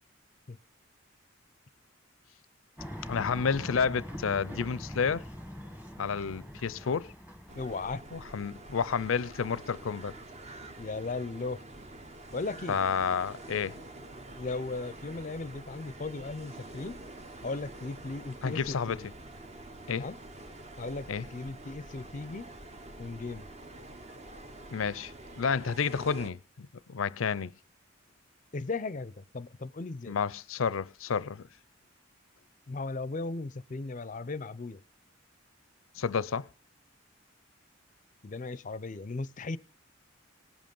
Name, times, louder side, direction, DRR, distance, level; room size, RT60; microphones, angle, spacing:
sound 1, 2.8-7.9, equal, 10° right, 1.5 m, -43 dB
voice 1, 3.1-5.2 6.0-7.1 8.1-10.1 12.7-13.8 18.4-19.0 19.9-20.1 21.1-21.3 24.7-27.5 30.1-31.4 36.0-36.5, left 6 dB, 90° left, 0.5 m, -30 dB
voice 2, 7.5-8.0 10.8-11.6 12.3-12.8 14.4-17.0 17.4-19.1 19.9-20.1 20.8-22.5 23.0-23.5 28.5-30.2 32.7-34.8 38.2-39.6, left 3 dB, 40° left, 0.5 m, -37 dB
sound 2, 7.5-26.3, right 2 dB, 35° right, 1.0 m, -47 dB
18.5 x 7.7 x 5.3 m
head